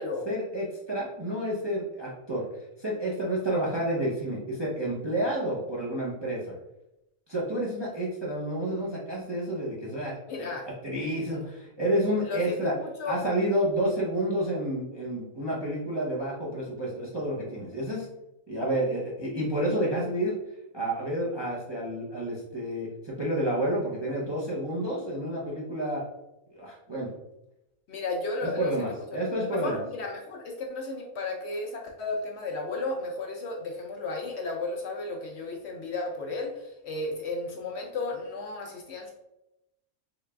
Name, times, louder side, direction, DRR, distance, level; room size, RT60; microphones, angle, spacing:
voice 1, 0.3-2.4 2.8-6.4 7.3-12.7 13.1-18.1 18.5-20.3 20.7-26.0 26.5-27.1 28.6-29.8, right 1 dB, 30° right, -5 dB, 0.5 m, -30 dB
voice 2, 10.3-10.7 11.1-11.4 12.2-13.2 27.9-28.7 29.4-39.1, left 3 dB, 65° left, 1 dB, 0.8 m, -34 dB
3.9 x 2.3 x 3.2 m, 0.90 s
omnidirectional pair, 1.4 m